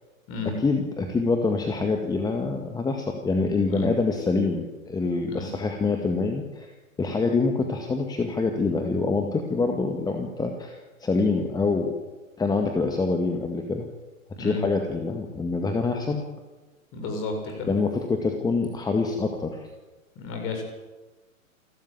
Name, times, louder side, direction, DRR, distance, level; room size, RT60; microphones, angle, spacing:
voice 1, 0.5-6.7 7.0-12.0 12.4-13.9 14.4-16.2 17.7-19.7, left 3 dB, 10° left, 4 dB, 1.9 m, -25 dB
voice 2, 16.9-17.7 20.2-20.6, left 3 dB, 30° left, 4 dB, 7.2 m, -32 dB
28.5 x 13.5 x 9.2 m, 1.2 s
figure-of-eight pair, 105°, 41 cm